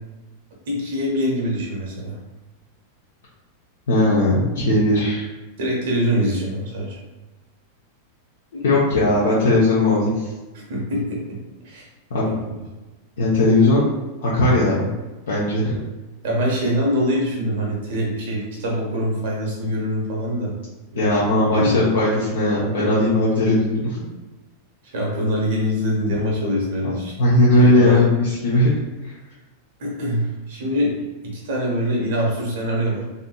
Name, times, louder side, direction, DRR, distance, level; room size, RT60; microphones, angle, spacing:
voice 1, 0.7-2.2 5.6-7.0 10.7-11.4 11.6-11.9 12.3-12.4 16.2-20.5 20.9-21.1 21.5-21.8 22.8-22.9 24.8-27.1 27.6-28.1 29.8-31.0 31.2-33.0, equal, 55° right, -3 dB, 0.7 m, -24 dB
voice 2, 3.9-5.3 8.5-10.3 12.1-12.4 13.2-13.8 14.2-14.9 15.3-15.8 21.0-24.0 26.8-26.9 27.2-28.7 29.0-29.1, left 1 dB, 65° left, -7 dB, 0.5 m, -18 dB
2.6 x 2.5 x 2.3 m, 1.1 s
figure-of-eight pair, 90°, 0 cm